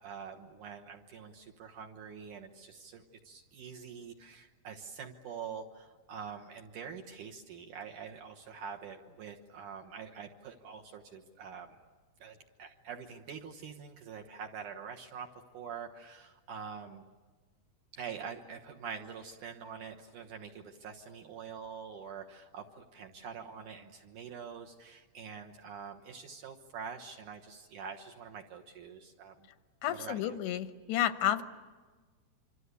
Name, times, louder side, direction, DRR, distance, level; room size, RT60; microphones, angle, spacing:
voice 1, 0.0-11.8 12.2-15.3 15.5-17.0 17.9-29.5 29.9-30.4, right 6 dB, 65° right, 2 dB, 2.3 m, -45 dB
voice 2, 29.8-31.4, left 11 dB, 85° left, 10 dB, 3.2 m, -31 dB
26.0 x 25.5 x 8.3 m, 1.3 s
omnidirectional pair, 4.8 m